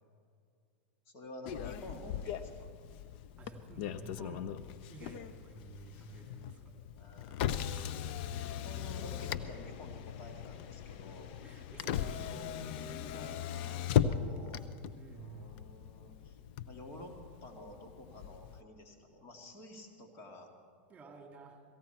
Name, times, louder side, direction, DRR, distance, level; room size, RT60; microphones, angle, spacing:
voice 1, 1.1-2.7 5.9-6.0 7.0-8.0 8.4-11.3 12.0-14.6 15.1-16.4 16.7-20.5, left 1 dB, 45° left, 3 dB, 2.0 m, -50 dB
Motor vehicle (road), 1.5-18.6, left 9 dB, 60° left, 0.6 m, -38 dB
voice 2, 3.4-4.6 4.9-6.7 10.9-12.3 15.0-15.5 20.9-21.6, right 3 dB, 20° right, 2 dB, 2.4 m, -52 dB
17.5 x 15.5 x 4.5 m, 2.3 s
hypercardioid pair, 110°, 6 cm